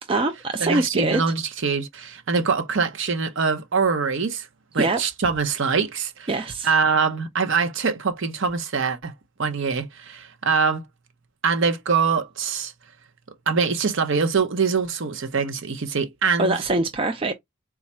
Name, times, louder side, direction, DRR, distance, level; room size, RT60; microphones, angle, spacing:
voice 1, 0.1-1.2 4.8-5.0 6.3-6.7 16.4-17.3, right 2 dB, 25° right, 0.3 m, -23 dB
voice 2, 0.6-4.5 4.7-6.3 6.6-9.1 9.4-10.8 11.4-12.7 13.5-16.6, right 5 dB, 55° right, 0.7 m, -23 dB
4.1 x 2.3 x 4.2 m
head